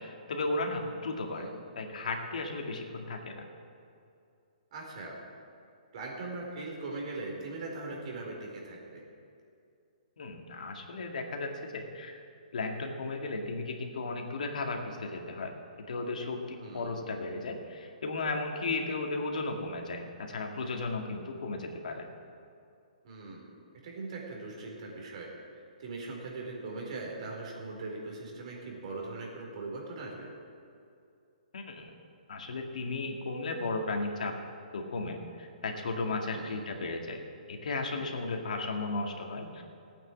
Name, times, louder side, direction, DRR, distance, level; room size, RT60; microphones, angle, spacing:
voice 1, 0.0-1.5 1.8-3.5 10.2-12.2 12.5-15.5 15.9-22.1 31.5-31.9 32.3-34.3 34.7-37.2 37.5-39.6, left 3 dB, 70° left, 2 dB, 2.1 m, -35 dB
voice 2, 4.7-5.2 5.9-9.0 16.6-16.9 23.0-23.5 23.8-25.3 25.8-30.3 36.3-36.6, right 3 dB, 55° right, -1 dB, 4.3 m, -40 dB
15.5 x 9.1 x 7.7 m, 2.5 s
hypercardioid pair, 135°, 4 cm